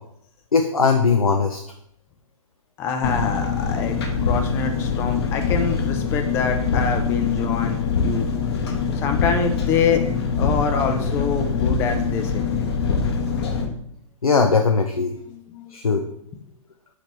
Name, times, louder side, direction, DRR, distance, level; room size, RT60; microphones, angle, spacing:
voice 1, 0.5-1.6 14.2-15.1 15.7-16.1, left 5 dB, 80° left, 4 dB, 0.5 m, -19 dB
voice 2, 2.8-4.0 4.3-8.3 8.5-8.6 9.0-10.0 10.4-12.5 15.3-15.6, left 6 dB, 15° left, 6 dB, 0.4 m, -25 dB
Engine, 3.0-13.7, left 5 dB, 45° left, 0.7 m, -24 dB
4.0 x 3.2 x 4.0 m, 0.73 s
figure-of-eight pair, 115°, 18 cm